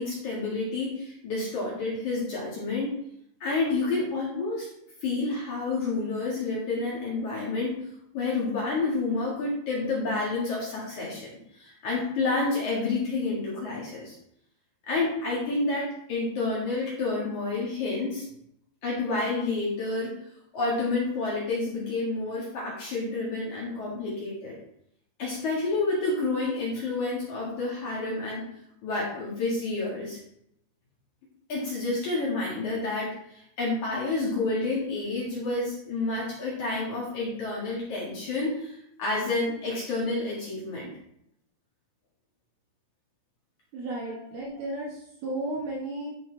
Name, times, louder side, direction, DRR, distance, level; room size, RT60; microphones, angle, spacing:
voice 1, 0.0-2.9 3.4-4.7 5.0-7.9 8.1-14.2 14.9-18.3 18.8-20.1 20.5-24.6 25.2-28.4 28.8-30.2 31.5-40.9 44.0-44.2, left 3 dB, 50° left, -5 dB, 2.6 m, -29 dB
voice 2, 43.7-46.1, right 2 dB, 65° right, -3 dB, 2.9 m, -34 dB
11.0 x 4.9 x 4.6 m, 0.74 s
omnidirectional pair, 5.4 m